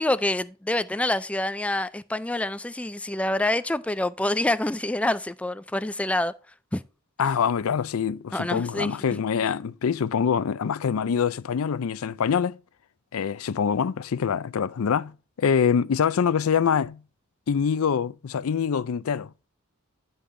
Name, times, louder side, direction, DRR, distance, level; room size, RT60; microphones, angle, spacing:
voice 1, 0.0-6.3 6.7-6.8 8.3-9.0, left 1 dB, 5° left, 0.3 m, -26 dB
voice 2, 7.2-12.6 13.1-15.1 15.4-17.0 17.5-19.3, left 7 dB, 75° left, 0.4 m, -25 dB
10.0 x 5.5 x 3.2 m
head